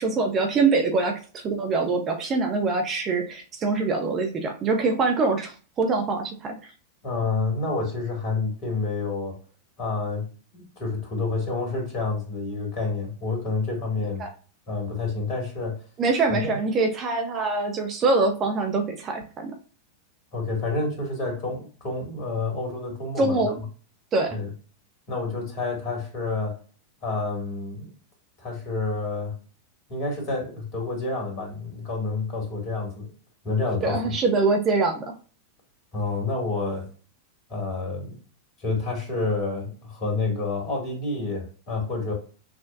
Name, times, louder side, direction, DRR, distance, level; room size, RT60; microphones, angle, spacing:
voice 1, 0.0-6.6 14.2-14.3 16.0-19.5 23.2-23.6 24.1-24.4 33.8-35.1, right 3 dB, 30° right, 4 dB, 0.8 m, -24 dB
voice 2, 7.0-9.4 9.8-14.2 14.7-15.8 16.3-16.6 20.3-23.4 24.3-24.5 25.1-26.6 27.0-27.9 28.4-29.4 29.9-33.1 33.4-34.0 35.9-36.9 37.5-38.2 38.6-42.1, left 3 dB, 40° left, 1 dB, 2.0 m, -29 dB
5.9 x 2.4 x 2.5 m, 0.37 s
figure-of-eight pair, 90°, 0 cm